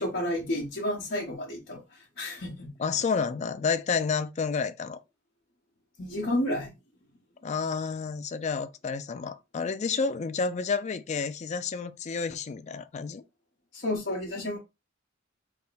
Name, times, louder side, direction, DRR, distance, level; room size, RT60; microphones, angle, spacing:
voice 1, 0.0-2.7 6.0-6.7 13.7-14.6, left 1 dB, 55° left, 1.0 m, -31 dB
voice 2, 2.8-5.0 7.4-13.2, left 5 dB, 35° left, 0.3 m, -30 dB
3.5 x 2.1 x 3.9 m
head